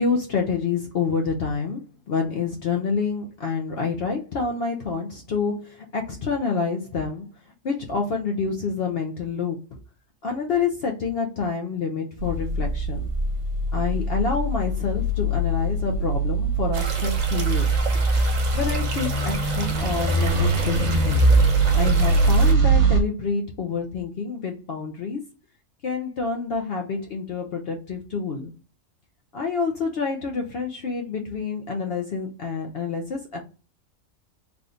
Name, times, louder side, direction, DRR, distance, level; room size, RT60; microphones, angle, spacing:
voice 1, 0.0-7.3 7.6-9.6 10.2-13.1 13.7-17.7 18.5-21.3 21.7-25.2 25.8-28.5 29.3-33.4, left 5 dB, 60° left, 1 dB, 0.7 m, -27 dB
sound 1, 12.2-23.0, right 2 dB, 60° right, 1.2 m, -22 dB
sound 2, 16.7-22.5, right 3 dB, 45° right, 0.6 m, -33 dB
3.5 x 2.3 x 3.8 m, 0.34 s
omnidirectional pair, 1.4 m